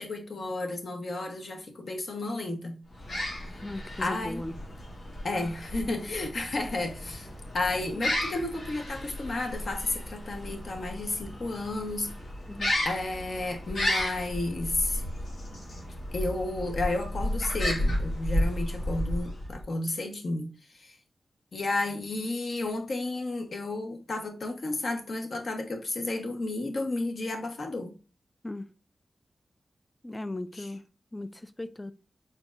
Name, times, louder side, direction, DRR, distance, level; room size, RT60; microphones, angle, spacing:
voice 1, 0.0-2.8 3.5-3.6 4.0-4.4 5.2-7.3 7.5-12.1 12.8-15.0 16.1-21.0 21.5-27.9 30.5-30.7, left 2 dB, 55° left, 0.9 m, -32 dB
sound 1, 2.9-19.7, left 1 dB, 75° left, 2.0 m, -33 dB
voice 2, 3.6-4.6 12.5-12.7 28.4-28.7 30.0-30.8 31.1-31.9, left 2 dB, 15° left, 0.3 m, -37 dB
4.4 x 4.0 x 2.4 m
wide cardioid pair, 140°, 0 cm